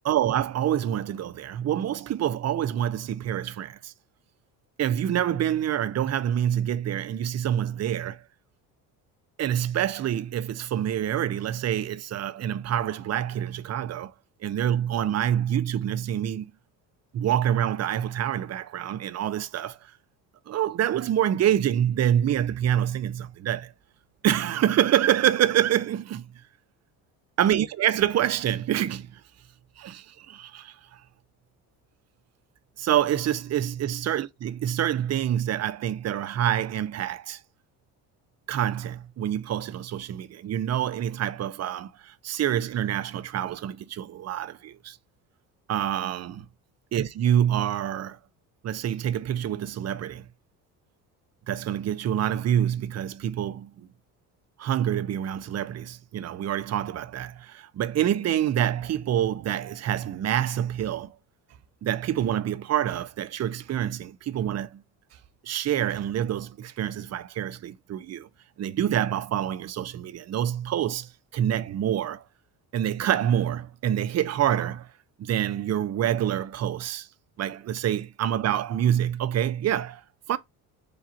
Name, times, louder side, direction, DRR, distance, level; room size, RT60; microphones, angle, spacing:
voice 1, 0.0-3.9 4.8-8.2 9.4-14.1 14.4-16.5 17.1-19.8 20.5-23.7 24.2-26.4 27.4-29.2 29.8-31.0 32.8-37.4 38.5-45.0 45.7-46.5 46.9-48.2 48.6-50.3 51.5-53.9 54.6-61.1 61.8-64.8 65.4-68.3 68.6-72.2 72.7-74.9 75.2-77.1 77.4-80.0 80.3-80.4, right 10 dB, 35° right, 0.5 m, -26 dB
4.8 x 2.4 x 3.9 m
supercardioid pair, 70°, 44 cm